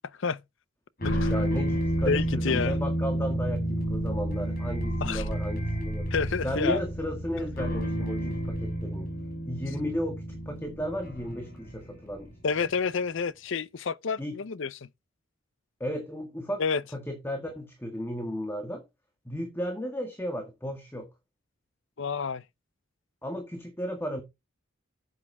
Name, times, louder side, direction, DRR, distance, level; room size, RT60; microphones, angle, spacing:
sound 1, 1.0-12.4, right 1 dB, 45° left, 5.1 m, -31 dB
voice 1, 1.3-6.1 6.4-9.1 9.5-12.3 14.2-14.4 15.8-16.6 16.9-18.8 19.3-21.1 23.2-24.2, equal, 10° left, 1.9 m, -34 dB
voice 2, 2.1-2.8 5.0-5.2 6.1-6.8 12.4-14.9 16.6-16.8 22.0-22.4, left 5 dB, 60° left, 0.6 m, -29 dB
10.5 x 8.5 x 3.5 m
head